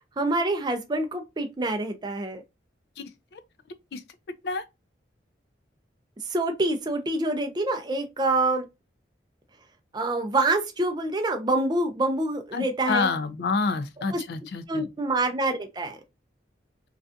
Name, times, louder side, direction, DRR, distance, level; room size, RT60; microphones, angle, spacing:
voice 1, 0.2-2.4 6.3-8.7 9.9-13.1 14.1-14.2 14.7-16.0, right 2 dB, 25° right, 0.4 m, -26 dB
voice 2, 3.0-3.4 3.9-4.0 4.4-4.6 12.5-14.9, left 4 dB, 60° left, 0.3 m, -28 dB
2.5 x 2.3 x 2.4 m
head